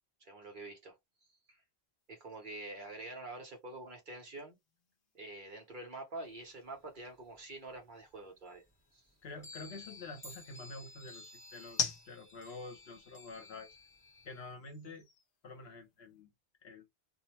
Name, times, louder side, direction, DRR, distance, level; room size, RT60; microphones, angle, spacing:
voice 1, 0.2-1.0 1.5-1.6 2.1-4.6 5.1-8.6 8.9-9.0, right 2 dB, 50° right, 1.0 m, -46 dB
sound 1, 2.0-16.2, left 5 dB, 60° left, 0.9 m, -47 dB
sound 2, 6.3-7.8 8.1-8.2 8.5-14.5, left 2 dB, 10° left, 0.9 m, -54 dB
voice 2, 9.2-13.8 14.2-15.0 15.4-16.3 16.6-16.9, left 3 dB, 75° left, 1.1 m, -48 dB
2.6 x 2.1 x 2.9 m
omnidirectional pair, 1.1 m